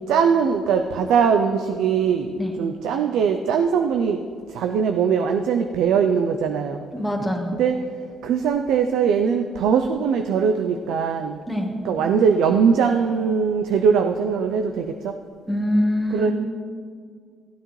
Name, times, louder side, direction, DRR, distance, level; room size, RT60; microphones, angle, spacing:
voice 1, 0.1-4.2 4.5-6.8 7.5-7.8 8.2-11.4 11.8-15.2 16.1-16.3, right 6 dB, 90° right, 5 dB, 0.5 m, -21 dB
voice 2, 6.9-7.6 11.5-11.7 15.5-16.3, left 1 dB, ahead, -1 dB, 1.5 m, -23 dB
16.0 x 9.0 x 3.2 m, 2.1 s
cardioid pair, 90°, 0 cm